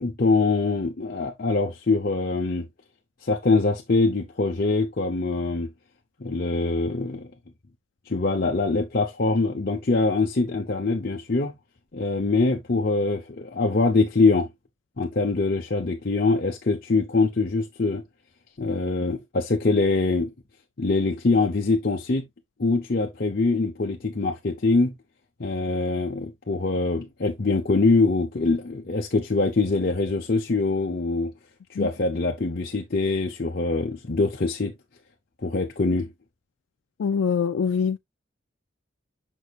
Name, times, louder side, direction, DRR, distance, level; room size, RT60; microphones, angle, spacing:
voice 1, 0.0-2.7 3.2-5.7 6.2-7.3 8.1-11.5 11.9-14.5 15.0-18.0 18.6-20.3 20.8-22.3 22.6-24.9 25.4-31.3 31.8-34.7 35.4-36.1, left 3 dB, 50° left, 0.8 m, -23 dB
voice 2, 37.0-38.0, left 6 dB, 85° left, 0.4 m, -24 dB
6.3 x 6.2 x 2.4 m
head